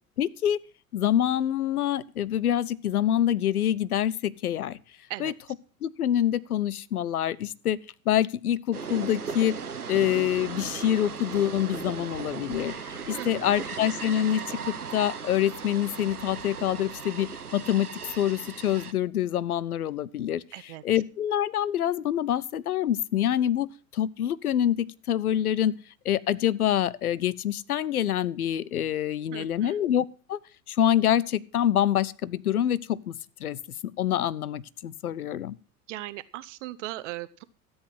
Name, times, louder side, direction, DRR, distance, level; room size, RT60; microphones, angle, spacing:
voice 1, 0.2-0.6 0.9-4.8 5.2-5.3 5.8-7.8 8.1-9.6 9.9-12.7 13.1-17.9 18.2-20.4 20.8-25.7 26.0-30.4 30.7-33.1 33.4-33.6 34.0-35.5, left 11 dB, 75° left, 20 dB, 0.7 m, -26 dB
sound 1, 8.7-18.9, right 6 dB, 90° right, 0.9 m, -37 dB
voice 2, 13.1-13.6 20.5-20.8 29.3-29.8 35.9-37.4, right 16 dB, 55° right, 16 dB, 0.8 m, -38 dB
13.5 x 8.0 x 6.0 m, 0.38 s
figure-of-eight pair, 80°, 44 cm